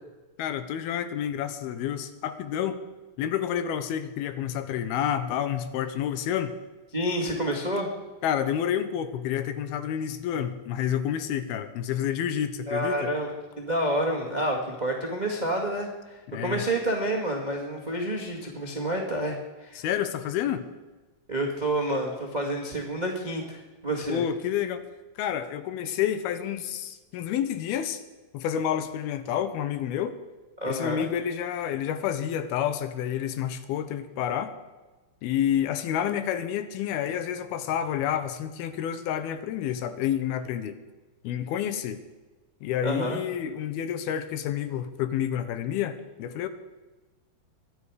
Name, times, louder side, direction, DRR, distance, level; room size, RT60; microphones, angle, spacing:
voice 1, 0.4-2.8 3.2-6.5 8.2-13.1 16.3-16.7 19.8-20.6 24.1-24.8 25.2-28.0 28.3-30.2 30.7-34.5 35.2-40.8 41.2-42.0 42.6-46.5, left 9 dB, 80° left, 11 dB, 2.7 m, -29 dB
voice 2, 6.9-7.9 12.7-19.8 21.3-24.2 30.6-31.1 42.8-43.2, right 1 dB, 30° right, 1 dB, 0.8 m, -29 dB
24.0 x 10.0 x 4.9 m, 1.2 s
omnidirectional pair, 4.5 m